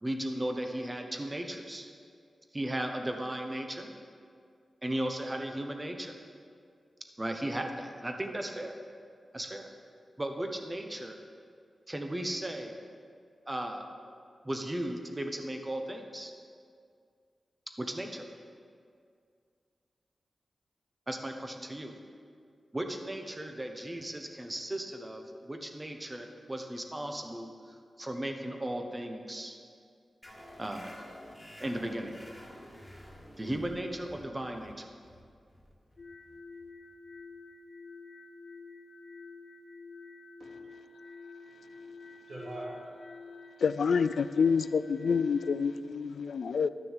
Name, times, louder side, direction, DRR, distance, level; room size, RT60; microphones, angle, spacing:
voice 1, 0.0-1.9 2.5-3.9 4.8-6.1 7.2-8.7 9.3-9.7 10.2-11.2 11.9-12.7 13.5-13.8 14.4-16.3 17.8-18.2 21.1-21.9 22.7-29.6 30.6-31.0 31.6-32.1 33.4-34.9, right 1 dB, 15° right, 4 dB, 1.0 m, -36 dB
sound 1, 30.2-37.4, equal, ahead, 1.8 m, -51 dB
sound 2, 36.0-45.6, left 3 dB, 50° left, 0.7 m, -49 dB
voice 2, 41.4-43.4, right 1 dB, 75° right, -7 dB, 2.9 m, -45 dB
voice 3, 43.6-46.7, left 5 dB, 80° left, 13 dB, 0.4 m, -27 dB
12.5 x 6.6 x 7.3 m, 2.2 s
wide cardioid pair, 130°, 0 cm